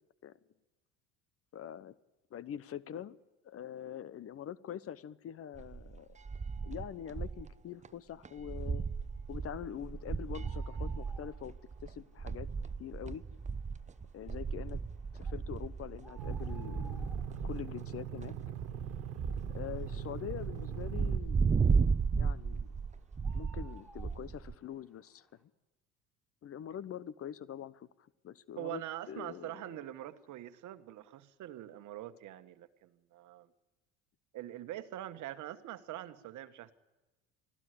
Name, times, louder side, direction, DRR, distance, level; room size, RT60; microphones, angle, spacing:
voice 1, 1.5-1.9 2.3-3.2 3.4-6.1 6.6-8.8 9.3-11.5 11.8-12.5 12.8-13.2 14.1-14.8 15.1-17.1 17.4-18.4 19.5-21.6 22.2-22.7 23.3-25.5 26.4-27.9 28.2-28.8 29.1-29.8, left 9 dB, 40° left, 19 dB, 0.9 m, -44 dB
sound 1, 5.5-7.5 7.8-7.9 8.2-24.5, right 5 dB, 20° right, 0.8 m, -35 dB
sound 2, 9.1-25.4, right 2 dB, ahead, 4.1 m, -63 dB
sound 3, 16.2-21.2, right 11 dB, 75° right, 1.6 m, -42 dB
voice 2, 28.6-33.5 34.3-36.7, right 13 dB, 55° right, 11 dB, 1.5 m, -44 dB
25.0 x 15.0 x 9.9 m, 1.1 s
hypercardioid pair, 70°, 36 cm